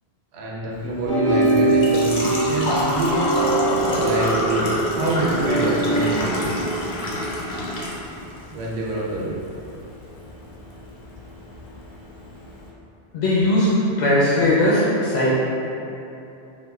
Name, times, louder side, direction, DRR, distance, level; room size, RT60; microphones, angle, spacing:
voice 1, 0.3-3.3 4.0-6.6 8.5-9.4, right 1 dB, 90° right, -4 dB, 0.9 m, -26 dB
Engine / Trickle dribble / Fill (with liquid), 0.7-12.7, left 1 dB, 60° left, 0.6 m, -28 dB
sound 1, 1.1-6.1, right 2 dB, 60° right, 0.9 m, -22 dB
voice 2, 13.1-13.7 14.0-15.3, left 1 dB, 90° left, -7 dB, 0.8 m, -18 dB
4.6 x 2.0 x 2.3 m, 2.8 s
omnidirectional pair, 1.1 m